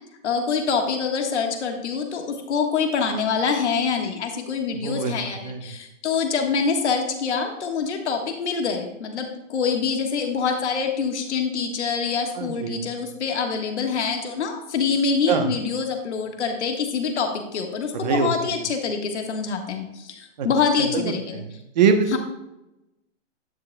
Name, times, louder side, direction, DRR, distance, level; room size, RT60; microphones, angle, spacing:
voice 1, 0.2-21.4 22.1-22.2, left 5 dB, 60° left, 3 dB, 1.6 m, -25 dB
voice 2, 4.7-5.1 5.4-5.6 12.4-12.8 15.3-15.5 18.0-18.3 20.4-20.5 20.9-21.0 21.3-21.4 21.7-22.2, right 6 dB, 35° right, 6 dB, 1.0 m, -22 dB
11.0 x 9.9 x 2.3 m, 0.89 s
hypercardioid pair, 170°, 37 cm